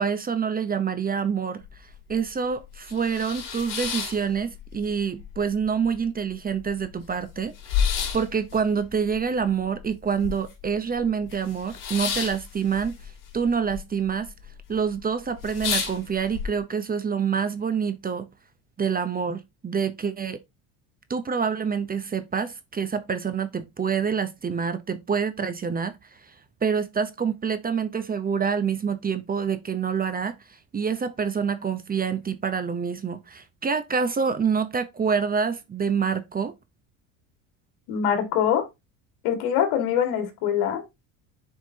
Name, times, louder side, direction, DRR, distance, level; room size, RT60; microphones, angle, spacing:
voice 1, 0.0-1.6 2.1-13.0 13.3-14.3 14.7-18.3 18.8-20.4 21.1-25.9 26.3-26.4 26.6-30.3 30.7-36.5, right 6 dB, 25° right, 0.8 m, -27 dB
sound 1, 1.6-1.7 2.1-2.2 2.7-4.9 5.2-5.9 6.3-6.4 6.6-10.7 11.0-13.8 14.0-14.6 15.0-15.1 15.4-16.5, left 7 dB, 55° left, 2.9 m, -30 dB
voice 2, 37.9-38.7 39.2-40.8, left 9 dB, 75° left, 2.0 m, -23 dB
7.5 x 4.7 x 2.8 m
supercardioid pair, 105°, 38 cm